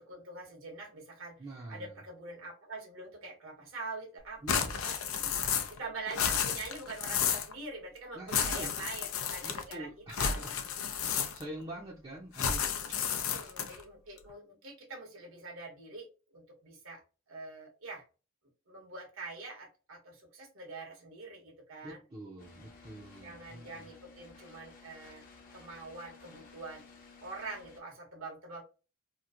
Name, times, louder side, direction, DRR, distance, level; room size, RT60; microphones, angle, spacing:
voice 1, 0.0-1.4 1.7-4.9 5.7-9.9 10.2-10.4 10.9-11.0 13.0-17.0 17.3-18.0 18.7-22.0 23.2-25.2 25.5-26.8 27.2-28.6, right 3 dB, 80° right, 1 dB, 1.1 m, -45 dB
voice 2, 1.4-2.0 4.4-4.9 5.2-5.7 8.1-8.7 9.4-10.6 11.1-12.7 21.8-23.9, right 1 dB, 25° right, -3 dB, 0.5 m, -45 dB
sound 1, 4.5-5.8 6.1-7.5 8.3-9.7 10.1-11.6 12.3-13.8, left 7 dB, 85° left, 0.5 m, -32 dB
sound 2, 22.4-27.8, left 4 dB, 40° left, 0.7 m, -55 dB
3.0 x 2.6 x 2.4 m, 0.33 s
head